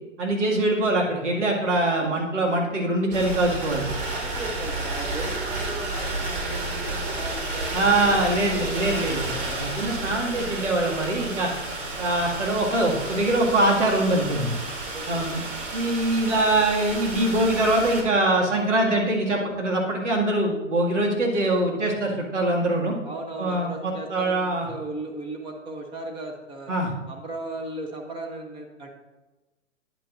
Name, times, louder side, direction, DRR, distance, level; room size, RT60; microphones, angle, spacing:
voice 1, 0.2-3.9 7.7-11.5 12.0-14.5 15.1-15.4 15.7-22.9 23.4-24.7 26.7-26.9, right 1 dB, 70° right, -1 dB, 2.1 m, -23 dB
sound 1, 3.1-18.0, right 2 dB, 45° right, 2.0 m, -31 dB
voice 2, 4.1-8.4 14.9-15.2 23.0-26.7 27.1-28.9, right 2 dB, 15° right, 1 dB, 0.7 m, -37 dB
9.8 x 8.7 x 2.5 m, 1.1 s
figure-of-eight pair, 110°, 38 cm